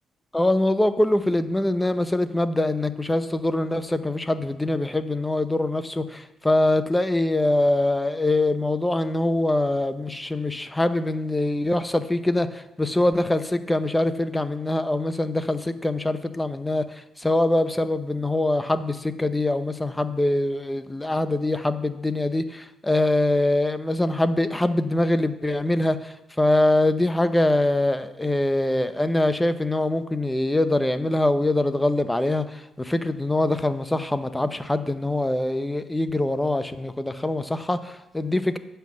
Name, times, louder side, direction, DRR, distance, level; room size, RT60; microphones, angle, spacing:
voice 1, 0.3-38.6, left 1 dB, 10° left, 11 dB, 0.7 m, -23 dB
9.2 x 5.7 x 7.4 m, 0.87 s
cardioid pair, 90°, 0 cm